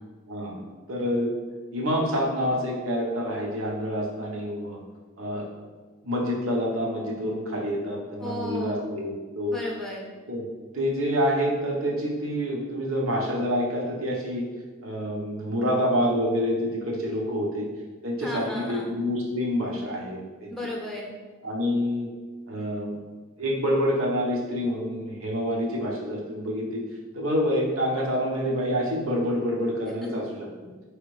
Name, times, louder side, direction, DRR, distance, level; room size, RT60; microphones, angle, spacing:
voice 1, 0.9-1.3 1.7-4.8 5.2-5.5 6.0-9.5 10.3-10.4 10.7-14.4 14.8-17.7 18.0-20.5 21.4-22.1 22.5-22.9 23.4-26.8 27.1-30.5, equal, 70° right, -3 dB, 1.0 m, -27 dB
voice 2, 8.2-8.9 9.5-10.1 18.2-18.9 20.5-21.1 30.0-30.1, left 1 dB, ahead, -2 dB, 0.8 m, -34 dB
5.1 x 3.2 x 3.2 m, 1.4 s
head